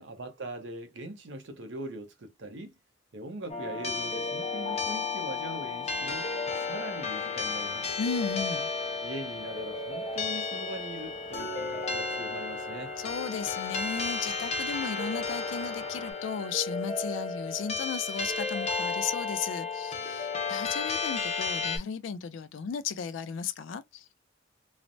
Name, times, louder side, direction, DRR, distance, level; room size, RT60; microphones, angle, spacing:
voice 1, 0.0-2.8 3.1-6.3 6.5-8.0 9.0-12.9, right 2 dB, 70° right, 0.7 m, -41 dB
sound 1, 3.5-21.8, left 4 dB, 35° left, 0.5 m, -33 dB
sound 2, 7.5-16.1, right 2 dB, 40° right, 0.9 m, -53 dB
voice 2, 8.0-8.7 13.0-24.1, left 6 dB, 85° left, 0.4 m, -35 dB
3.1 x 2.0 x 2.6 m
head